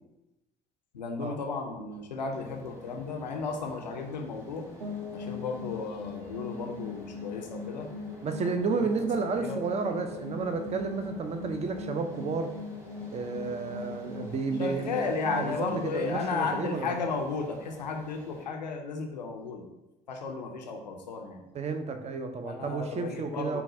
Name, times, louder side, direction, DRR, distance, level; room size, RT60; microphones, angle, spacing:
voice 1, 0.9-4.7 5.1-7.9 8.8-8.9 9.3-9.6 14.6-19.7 20.1-21.4 22.4-23.6, left 4 dB, 85° left, 3 dB, 0.5 m, -34 dB
sound 1, 2.3-18.5, left 1 dB, 15° right, 1.4 m, -50 dB
sound 2, 4.8-17.7, left 4 dB, 85° right, 0.6 m, -41 dB
voice 2, 8.2-12.5 13.1-16.9 21.5-23.6, right 4 dB, 30° right, 7 dB, 0.5 m, -32 dB
6.8 x 2.3 x 2.6 m, 0.99 s
figure-of-eight pair, 50°, 21 cm